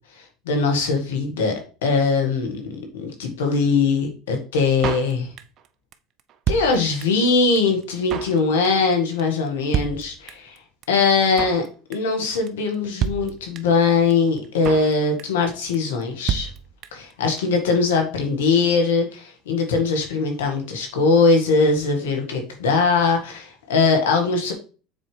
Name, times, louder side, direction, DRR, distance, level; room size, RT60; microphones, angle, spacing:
voice 1, 0.2-5.3 6.5-10.6 10.9-11.6 11.9-16.5 16.9-24.5, left 4 dB, 85° left, 4 dB, 1.7 m, -21 dB
Drum kit, 4.8-5.7 5.9-6.0 6.2-7.3 7.6-7.7 7.8-8.4 8.6-8.9 9.2-9.3 9.5-9.6 9.7-10.6 10.8-10.9 11.1-11.7 11.9-12.2 12.5-12.6 12.7-12.8 13.0-13.8 14.1-14.2 14.4-14.9 15.2-15.5 15.7-15.8 16.0-16.1 16.3-17.1 17.4-17.5 17.6-17.7, right 8 dB, 50° right, 0.6 m, -28 dB
7.1 x 4.5 x 3.3 m, 0.36 s
hypercardioid pair, 85°, 0 cm